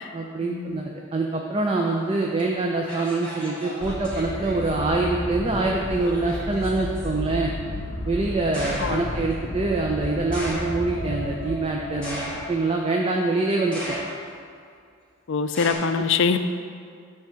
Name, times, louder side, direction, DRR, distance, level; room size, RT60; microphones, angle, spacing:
voice 1, 0.1-7.5 8.1-14.0 15.9-16.1, right 3 dB, 25° right, 0 dB, 0.4 m, -25 dB
sound 1, 2.4-2.5 2.8-4.8 5.5-7.1 8.5-9.1 10.3-10.9 12.0-12.8 13.7-14.4 15.5-15.7, equal, 5° left, 1.7 m, -36 dB
sound 2, 3.8-12.6, left 1 dB, 30° left, 1.0 m, -33 dB
voice 2, 15.3-16.4, left 5 dB, 60° left, 9 dB, 0.4 m, -23 dB
8.2 x 3.5 x 6.3 m, 2.3 s
head